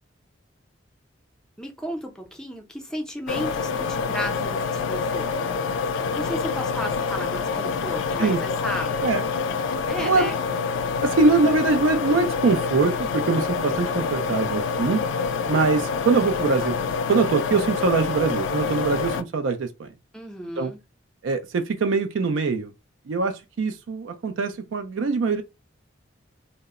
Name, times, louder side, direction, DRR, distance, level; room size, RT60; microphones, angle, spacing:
voice 1, 1.6-5.7 6.1-9.0 9.9-10.4 20.1-20.8, equal, 5° left, 0.5 m, -34 dB
sound 1, 3.3-19.2, left 5 dB, 70° left, 0.3 m, -27 dB
voice 2, 10.0-10.3 11.0-15.0 15.5-16.8 17.1-19.9 20.6-20.7 21.2-22.7 23.1-25.4, right 4 dB, 75° right, 0.4 m, -23 dB
2.0 x 2.0 x 3.5 m
head